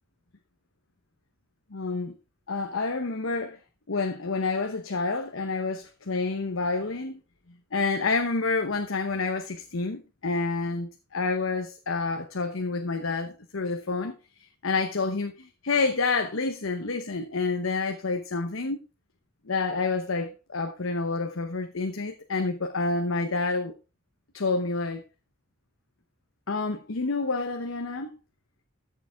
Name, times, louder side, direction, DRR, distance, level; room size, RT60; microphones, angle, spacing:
voice 1, 1.7-2.1 2.5-3.6 3.9-7.2 7.7-14.1 14.6-18.8 19.5-23.7 24.3-25.0 26.5-28.1, left 3 dB, 85° left, 1.0 m, -28 dB
13.0 x 7.0 x 3.5 m
head